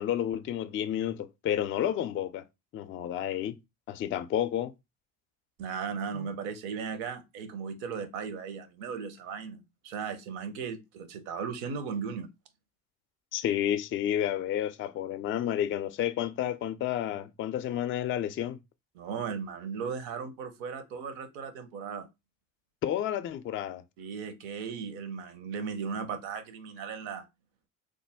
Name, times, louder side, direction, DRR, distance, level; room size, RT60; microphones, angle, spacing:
voice 1, 0.0-2.4 2.7-3.6 3.9-4.7 13.3-18.6 22.8-23.8, left 11 dB, 30° left, 0.4 m, -30 dB
voice 2, 5.6-12.3 18.9-22.1 24.0-27.3, right 6 dB, 65° right, 0.9 m, -36 dB
3.2 x 2.1 x 3.4 m
hypercardioid pair, 65°, 42 cm